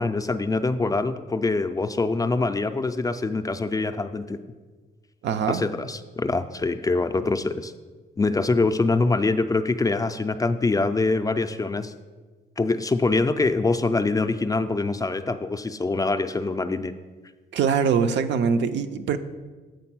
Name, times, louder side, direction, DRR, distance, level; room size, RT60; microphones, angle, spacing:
voice 1, 0.0-4.4 5.5-7.7 8.2-11.9 12.6-16.9, left 3 dB, 20° left, 9 dB, 0.3 m, -24 dB
voice 2, 5.2-5.6 17.5-19.2, right 6 dB, 75° right, 9 dB, 0.5 m, -23 dB
7.7 x 3.9 x 6.0 m, 1.3 s
cardioid pair, 95°, 19 cm